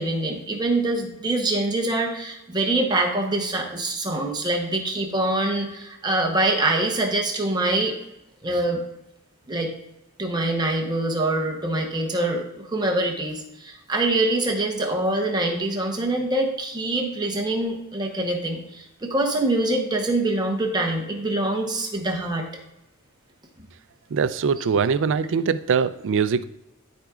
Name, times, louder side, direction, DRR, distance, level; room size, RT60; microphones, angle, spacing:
voice 1, 0.0-8.0 8.4-8.8 9.5-9.7 10.2-22.5, right 2 dB, 20° right, 2 dB, 0.9 m, -24 dB
voice 2, 24.1-26.4, right 6 dB, 55° right, 13 dB, 0.4 m, -22 dB
12.0 x 5.0 x 2.4 m, 0.87 s
head